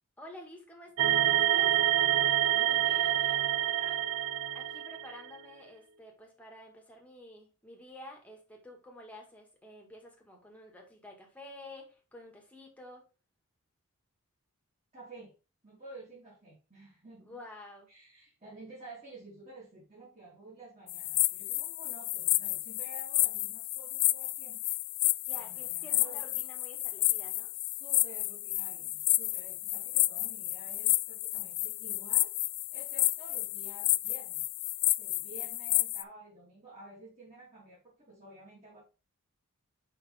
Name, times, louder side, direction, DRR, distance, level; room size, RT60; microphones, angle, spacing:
voice 1, 0.2-1.7 4.5-13.0 17.2-17.9 25.3-27.5, left 1 dB, 5° left, 0 dB, 1.8 m, -50 dB
sound 1, 1.0-5.3, right 12 dB, 65° right, 0.4 m, -27 dB
voice 2, 2.5-4.0 14.9-15.3 15.6-17.4 17.9-24.6 25.3-26.2 27.8-32.3 32.7-34.4 35.0-38.8, right 2 dB, 30° right, -9 dB, 3.2 m, -51 dB
sound 2, 20.9-36.0, left 20 dB, 70° left, 0.3 m, -31 dB
5.8 x 5.3 x 3.4 m, 0.32 s
head